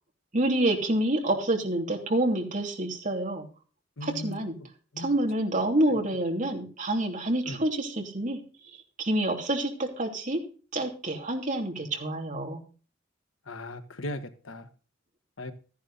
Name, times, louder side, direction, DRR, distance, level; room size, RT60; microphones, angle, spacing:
voice 1, 0.3-3.4 4.0-4.5 5.0-8.4 9.0-10.4 10.7-12.6, right 1 dB, 40° right, 3.0 m, -27 dB
voice 2, 4.0-4.4 4.9-5.1 7.4-7.6 13.5-14.7 15.4-15.5, left 1 dB, 85° left, 1.5 m, -37 dB
14.0 x 10.5 x 4.2 m
head